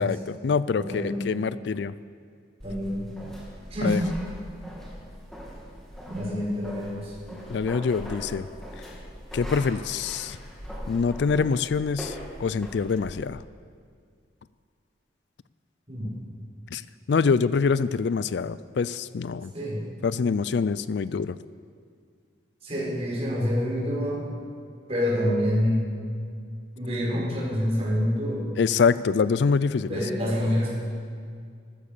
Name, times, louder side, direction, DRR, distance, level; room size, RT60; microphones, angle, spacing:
voice 1, 0.0-1.9 3.8-4.0 7.5-8.5 9.3-10.4 10.9-13.4 16.7-16.8 17.1-19.5 20.0-21.4 28.6-30.0, left 5 dB, 60° left, 17 dB, 0.4 m, -25 dB
voice 2, 0.8-1.2 2.6-3.1 3.7-4.0 6.1-7.1 15.9-16.1 19.5-19.8 22.6-24.3 24.9-25.9 26.8-28.5 29.9-30.7, equal, 35° right, -5 dB, 5.3 m, -27 dB
sound 1, 2.6-13.3, equal, ahead, 2.6 m, -40 dB
15.0 x 13.5 x 6.8 m, 2.1 s
head